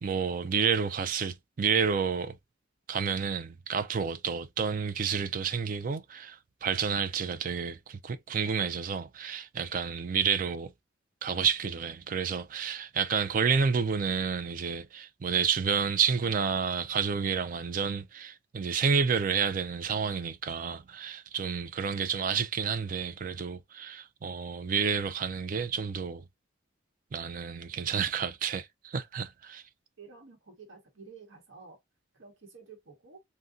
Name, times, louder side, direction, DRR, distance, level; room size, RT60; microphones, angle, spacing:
voice 1, 0.0-2.4 2.9-10.7 11.2-26.2 27.1-29.6, right 6 dB, 40° right, 0.4 m, -30 dB
voice 2, 30.0-31.8 32.1-33.2, right 5 dB, 75° right, 1.0 m, -51 dB
3.6 x 2.2 x 2.5 m
head